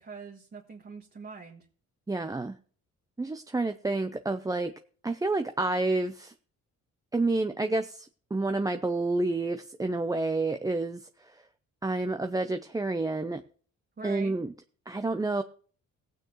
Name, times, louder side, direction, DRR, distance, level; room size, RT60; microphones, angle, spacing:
voice 1, 0.0-1.7 14.0-14.3, right 4 dB, 35° right, 0 dB, 1.6 m, -43 dB
voice 2, 2.1-2.6 3.2-4.7 5.0-6.3 7.1-11.4 11.8-13.4 14.0-14.5 14.9-15.4, right 2 dB, 10° right, 7 dB, 0.6 m, -29 dB
15.5 x 8.9 x 3.1 m, 0.44 s
cardioid pair, 90°, 30 cm